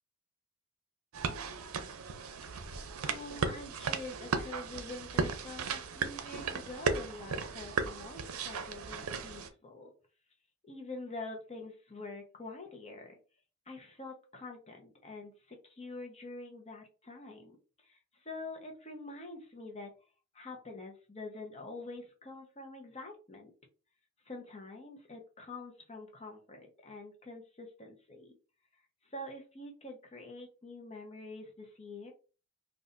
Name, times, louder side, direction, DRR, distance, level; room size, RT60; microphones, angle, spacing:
sound 1, 1.1-9.5, right 5 dB, 85° right, 0.5 m, -36 dB
voice 1, 3.0-9.9 10.7-13.2 13.7-19.9 20.3-23.5 24.2-28.4 29.0-32.1, left 2 dB, 30° left, 2 dB, 0.8 m, -46 dB
4.0 x 2.5 x 2.5 m, 0.34 s
head